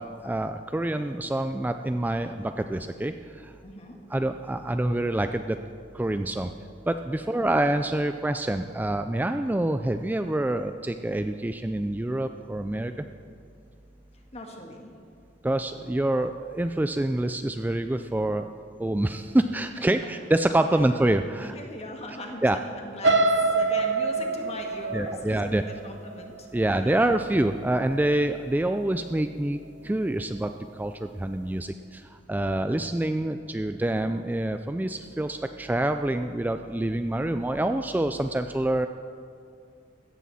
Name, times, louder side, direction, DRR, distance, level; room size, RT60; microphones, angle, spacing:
voice 1, 0.0-3.5 4.1-5.6 5.9-6.5 6.9-12.9 15.4-18.5 18.8-21.6 22.4-22.6 24.9-25.6 26.5-29.6 29.8-38.9, right 1 dB, 10° right, 8 dB, 0.3 m, -26 dB
voice 2, 3.6-4.0 7.2-7.5 14.3-14.9 20.0-20.1 20.7-20.8 21.5-27.0, left 1 dB, 35° left, 2 dB, 1.8 m, -40 dB
sound 1, 23.0-27.0 27.5-27.8 28.1-28.2, right 3 dB, 90° right, 1.1 m, -25 dB
16.5 x 13.5 x 4.2 m, 2.5 s
head